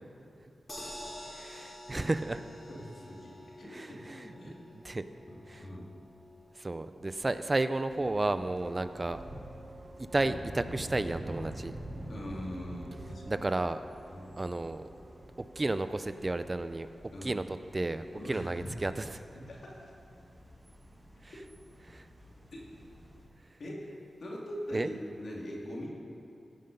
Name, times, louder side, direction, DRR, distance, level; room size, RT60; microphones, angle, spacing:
sound 1, 0.7-12.9 13.3-13.4 13.7-13.8, left 1 dB, 25° left, 2.9 m, -51 dB
voice 1, 1.3-2.4 3.6-5.1 5.5-5.7 6.6-9.2 10.0-11.7 13.3-13.8 14.4-14.8 15.4-16.9 17.2-19.2 21.2-21.3 21.8-22.1 24.7-24.9, right 2 dB, 35° right, 11 dB, 0.4 m, -33 dB
voice 2, 2.7-4.6 5.3-5.8 12.1-13.5 14.1-14.3 17.1-17.3 18.1-18.4 19.3-19.9 22.5-22.6 23.6-23.8 24.2-25.9, equal, 70° left, -3 dB, 2.4 m, -42 dB
sound 2, 7.9-23.3, equal, 10° right, 1.9 m, -56 dB
sound 3, 8.0-15.8, right 1 dB, 60° right, 2.8 m, -45 dB
15.0 x 5.8 x 5.2 m, 2.7 s
cardioid pair, 50°, 0 cm